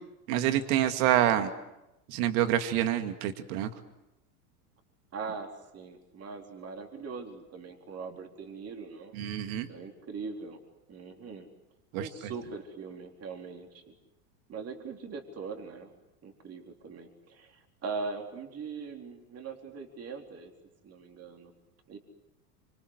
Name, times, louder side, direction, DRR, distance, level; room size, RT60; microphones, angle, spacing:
voice 1, 0.3-1.5 2.1-3.7 9.1-9.7 11.9-12.1, right 11 dB, 65° right, 8 dB, 2.4 m, -27 dB
voice 2, 5.1-9.1 9.7-10.6 10.9-11.5 12.0-13.9 14.5-15.9 16.2-20.5 20.8-21.5 21.9-22.0, right 4 dB, 30° right, 3 dB, 4.1 m, -41 dB
26.0 x 25.5 x 8.2 m, 0.93 s
hypercardioid pair, 105°, 46 cm